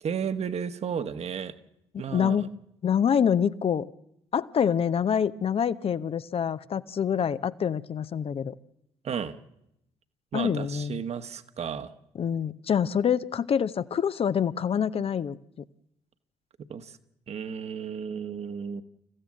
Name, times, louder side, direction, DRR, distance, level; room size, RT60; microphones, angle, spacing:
voice 1, 0.0-1.5 2.0-2.5 9.0-9.4 10.3-11.9 16.6-17.0 17.3-18.8, right 7 dB, 45° right, 10 dB, 1.5 m, -33 dB
voice 2, 2.1-2.5 2.8-3.9 4.3-8.5 10.3-11.0 12.2-15.4, left 8 dB, 40° left, 14 dB, 0.8 m, -26 dB
28.5 x 15.5 x 7.6 m, 0.82 s
figure-of-eight pair, 45°, 15 cm